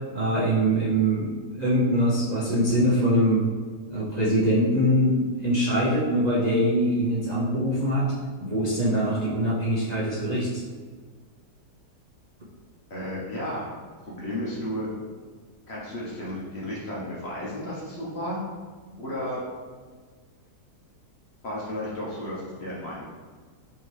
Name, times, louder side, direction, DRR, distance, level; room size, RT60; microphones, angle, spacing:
voice 1, 0.1-1.3 1.5-3.4 3.9-8.1 8.4-10.6, equal, 85° right, -8 dB, 0.3 m, -23 dB
voice 2, 12.9-13.7 14.0-14.9 15.7-18.4 19.0-19.4 21.4-23.1, left 1 dB, 50° left, -5 dB, 0.8 m, -33 dB
4.5 x 2.8 x 3.1 m, 1.5 s
omnidirectional pair, 1.8 m